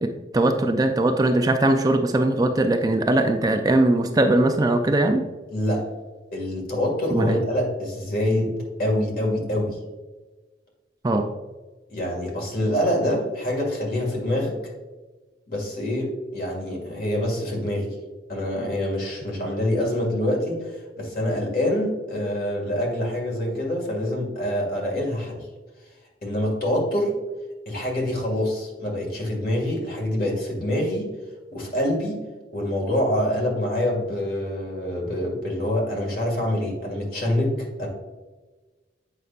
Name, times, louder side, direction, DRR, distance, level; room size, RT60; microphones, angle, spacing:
voice 1, 0.0-5.2 7.1-7.4 11.0-11.3, right 1 dB, 20° right, 5 dB, 0.4 m, -20 dB
voice 2, 5.5-5.9 6.3-9.8 11.9-14.5 15.5-17.9 18.3-25.5 26.2-27.2 27.7-31.1 31.5-32.2 32.5-37.9, left 1 dB, 50° left, -1 dB, 1.9 m, -25 dB
7.9 x 5.5 x 2.4 m, 1.2 s
head